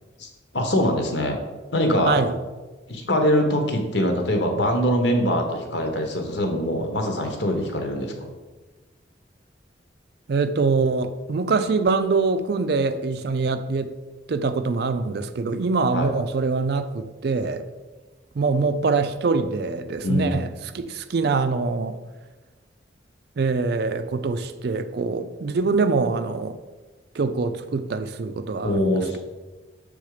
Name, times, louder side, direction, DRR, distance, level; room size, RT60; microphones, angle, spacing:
voice 1, 0.2-1.4 1.7-2.2 2.9-8.3 15.9-16.1 20.0-20.4 28.6-29.2, equal, 70° left, 1.1 m, -23 dB
voice 2, 2.1-2.4 10.3-13.9 14.3-17.7 18.3-20.5 20.7-22.0 23.4-26.6 27.1-29.2, right 4 dB, 55° right, 0.4 m, -24 dB
6.9 x 3.6 x 4.9 m
head